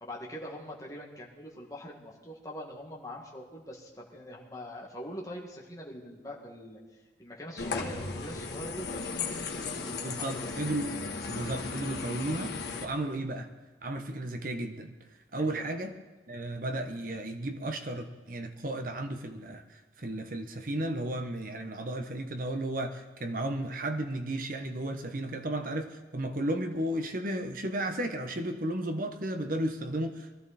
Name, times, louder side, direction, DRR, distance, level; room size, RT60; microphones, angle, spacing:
voice 1, 0.0-10.6 15.4-15.7, equal, 20° left, -3 dB, 2.0 m, -43 dB
sound 1, 7.6-12.9, left 4 dB, 70° left, 1.5 m, -36 dB
voice 2, 10.0-11.0 11.3-12.5 12.8-13.5 13.8-14.9 15.3-15.9 16.3-30.4, right 1 dB, 50° right, 6 dB, 1.2 m, -34 dB
21.0 x 13.0 x 4.3 m, 1.2 s
head